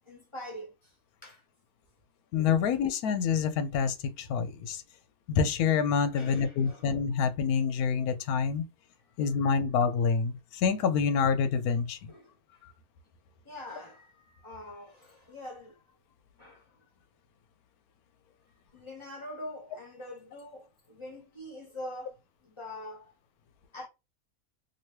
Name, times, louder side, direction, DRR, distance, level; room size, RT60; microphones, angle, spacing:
voice 1, 0.1-0.9 1.2-1.4 2.6-2.9 6.1-6.9 9.2-9.3 12.1-12.3 13.4-15.8 16.4-16.8 18.7-22.1 22.4-23.1 23.7-23.9, left 1 dB, 20° left, 1.2 m, -44 dB
voice 2, 2.3-4.8 5.3-8.6 9.2-12.1, left 6 dB, 80° left, 1.1 m, -27 dB
3.0 x 2.7 x 3.1 m
omnidirectional pair, 1.6 m